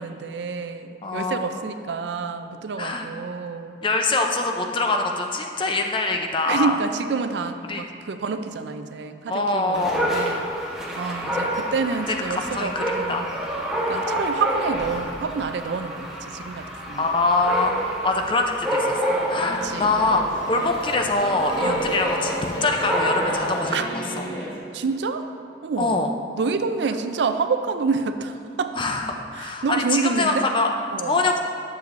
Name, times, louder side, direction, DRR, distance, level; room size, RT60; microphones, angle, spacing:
voice 1, 0.0-3.8 6.5-10.5 11.0-13.3 13.9-17.0 19.6-19.9 21.6-22.0 23.7-23.9 24.7-25.3 25.6-26.0 26.4-28.8 29.4-30.5 30.9-31.2, right 4 dB, 75° right, 8 dB, 0.4 m, -28 dB
voice 2, 1.0-1.7 2.8-3.1 3.8-6.8 7.7-7.9 9.3-10.1 11.3-11.5 12.1-13.3 17.0-23.9 24.2-24.3 25.8-26.1 28.7-29.1 29.3-30.7 31.1-31.4, left 3 dB, 30° left, 3 dB, 0.5 m, -24 dB
Dog, 9.7-23.5, equal, 5° right, 1.0 m, -28 dB
Singing / Musical instrument, 19.1-24.6, equal, 60° left, 1.4 m, -31 dB
10.5 x 7.0 x 2.6 m, 2.6 s
head